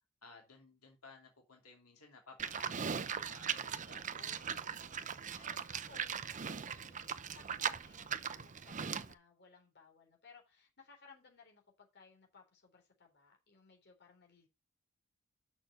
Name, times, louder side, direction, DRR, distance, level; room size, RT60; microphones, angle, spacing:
voice 1, 0.2-4.0 5.2-5.5, left 3 dB, 85° left, 1 dB, 2.8 m, -58 dB
Livestock farm animals working animals, 2.4-9.1, right 7 dB, 35° right, 0.6 m, -39 dB
voice 2, 3.9-14.5, left 4 dB, 50° left, 1 dB, 3.5 m, -62 dB
6.7 x 5.9 x 6.9 m, 0.25 s
head